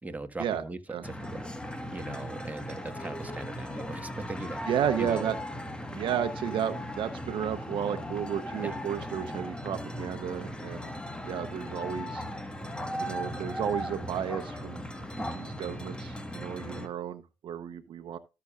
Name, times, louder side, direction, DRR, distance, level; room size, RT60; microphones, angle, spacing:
voice 1, 0.0-0.8 1.0-1.5 1.9-4.6 5.0-5.3 8.6-8.8 15.1-15.4, right 2 dB, 20° right, 1.6 m, -39 dB
sound 1, 1.0-16.9, left 1 dB, 10° left, 1.6 m, -38 dB
voice 2, 4.7-5.4 5.9-10.9 11.2-12.2 13.0-14.8 15.4-18.2, right 9 dB, 70° right, 1.0 m, -32 dB
14.0 x 6.9 x 2.5 m
cardioid pair, 75°, 9 cm